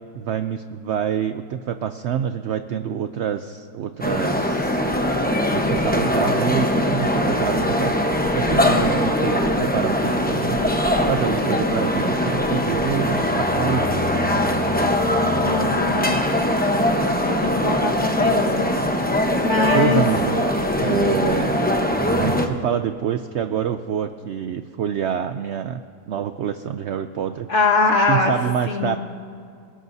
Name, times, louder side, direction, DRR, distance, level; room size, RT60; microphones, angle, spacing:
voice 1, 0.1-4.8 5.5-14.4 19.7-20.4 20.8-21.7 22.2-25.8 26.1-27.5 28.1-29.0, right 9 dB, 80° right, 9 dB, 0.6 m, -27 dB
sound 1, 4.0-22.5, left 1 dB, 10° left, 0.7 m, -21 dB
voice 2, 8.5-8.8 15.4-16.3 17.3-18.7 19.4-20.0 27.5-28.3 28.7-29.0, left 3 dB, 45° left, -1 dB, 1.9 m, -22 dB
28.0 x 17.5 x 2.7 m, 2.3 s
omnidirectional pair, 1.7 m